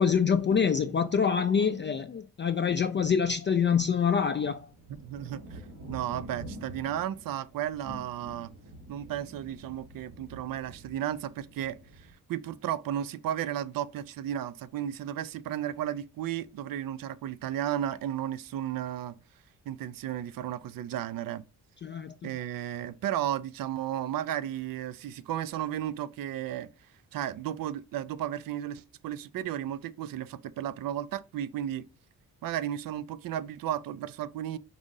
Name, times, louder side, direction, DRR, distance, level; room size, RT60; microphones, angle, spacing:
voice 1, 0.0-4.7 21.8-22.1, left 6 dB, 30° left, 0.4 m, -25 dB
sound 1, 3.8-12.1, right 1 dB, 85° right, 1.6 m, -47 dB
voice 2, 4.9-5.6 5.9-8.5 8.9-19.2 19.7-21.4 22.2-26.7 27.1-31.9 32.4-34.6, right 11 dB, 65° right, 0.5 m, -34 dB
4.9 x 2.6 x 3.7 m
cardioid pair, 65°, 37 cm